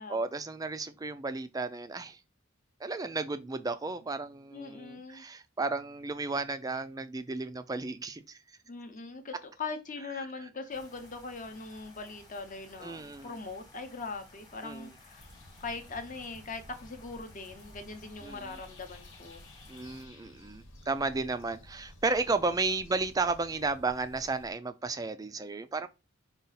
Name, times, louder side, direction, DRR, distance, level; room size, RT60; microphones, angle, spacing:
voice 1, 0.1-2.2 2.8-8.4 12.8-13.3 14.6-14.9 18.2-18.6 19.7-25.9, right 3 dB, 15° right, 0.3 m, -33 dB
voice 2, 4.5-5.2 8.7-15.3 15.6-19.4 22.7-22.8, left 4 dB, 35° left, 0.7 m, -41 dB
sound 1, 10.7-20.0, left 2 dB, 20° left, 1.2 m, -57 dB
sound 2, 15.2-24.5, left 1 dB, 65° left, 1.1 m, -53 dB
5.3 x 2.4 x 3.9 m
head